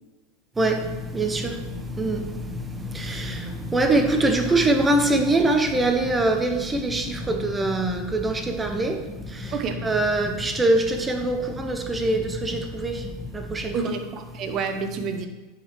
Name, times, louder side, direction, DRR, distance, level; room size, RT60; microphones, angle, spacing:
voice 1, 0.6-9.5 9.8-13.8, right 2 dB, 15° right, 5 dB, 0.9 m, -24 dB
sound 1, 0.8-13.8, left 2 dB, 10° left, 0.7 m, -37 dB
voice 2, 3.2-3.7 9.5-9.8 13.7-15.3, right 5 dB, 40° right, 6 dB, 0.9 m, -30 dB
10.0 x 5.1 x 3.2 m, 1.1 s
hypercardioid pair, 85°, 0 cm